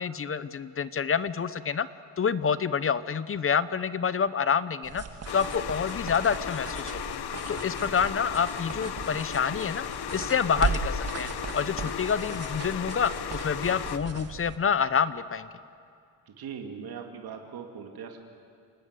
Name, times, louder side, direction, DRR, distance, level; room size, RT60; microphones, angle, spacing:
voice 1, 0.0-1.9 2.2-5.0 5.3-7.1 7.5-9.8 10.1-15.5, left 6 dB, 30° left, 15 dB, 0.7 m, -28 dB
sound 1, 4.8-14.6, right 5 dB, 35° right, 1.5 m, -37 dB
sound 2, 5.3-14.0, left 10 dB, 65° left, 0.9 m, -36 dB
voice 2, 16.3-18.2, right 6 dB, 55° right, 3 dB, 2.6 m, -40 dB
28.5 x 19.0 x 8.3 m, 2.3 s
cardioid pair, 135°, 42 cm